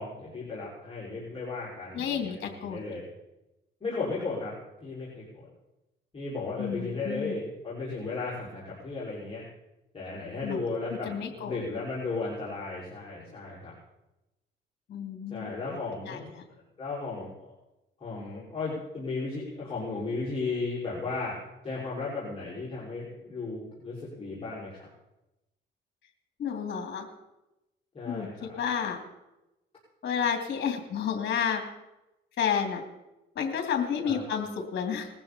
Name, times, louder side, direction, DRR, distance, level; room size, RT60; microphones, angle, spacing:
voice 1, 0.0-2.3 2.6-3.0 3.8-4.5 4.8-5.5 6.1-9.4 9.9-13.7 15.3-16.3 16.8-17.5 18.0-21.4 21.6-24.9 27.9-28.5 34.0-34.2, left 3 dB, 30° left, -7 dB, 5.9 m, -35 dB
voice 2, 1.9-2.8 6.6-7.3 10.4-10.6 10.9-11.6 14.9-15.5 16.1-16.4 26.4-27.1 28.0-29.0 30.0-31.6 32.4-32.8 33.3-35.1, left 7 dB, 60° left, 4 dB, 2.8 m, -31 dB
20.0 x 15.0 x 4.4 m, 0.96 s
cardioid pair, 90°, 20 cm